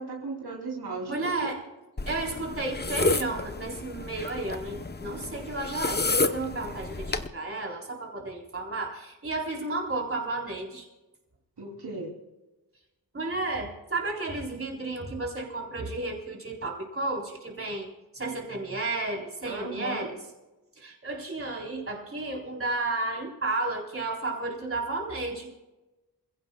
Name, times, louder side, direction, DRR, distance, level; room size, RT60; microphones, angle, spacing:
voice 1, 0.0-1.5 11.6-12.1 19.4-20.1, right 3 dB, 80° right, -1 dB, 3.4 m, -36 dB
voice 2, 1.1-1.6 2.1-10.9 13.1-17.9 18.1-20.2 20.8-25.5, right 2 dB, 35° right, -1 dB, 4.0 m, -32 dB
sound 1, 2.0-7.3, left 2 dB, 25° left, 0.9 m, -30 dB
28.0 x 16.0 x 2.4 m, 1.1 s
wide cardioid pair, 105°, 39 cm